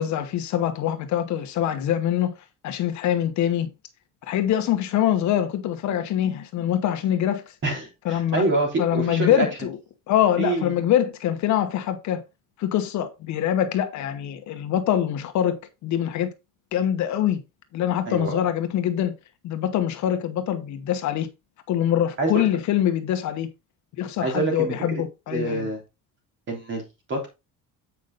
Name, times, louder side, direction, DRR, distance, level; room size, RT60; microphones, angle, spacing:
voice 1, 0.0-2.3 2.6-3.7 4.3-7.5 8.0-8.4 8.8-9.8 10.1-12.2 12.6-16.3 16.7-17.4 17.7-19.1 19.4-21.3 21.7-23.5 24.0-25.7, left 10 dB, 55° left, 1.1 m, -24 dB
voice 2, 7.6-9.5 10.4-10.8 18.1-18.4 22.2-22.4 24.2-25.0 25.3-25.8 26.5-27.3, right 3 dB, 35° right, 3.2 m, -26 dB
8.3 x 5.2 x 3.9 m
cardioid pair, 175°, 33 cm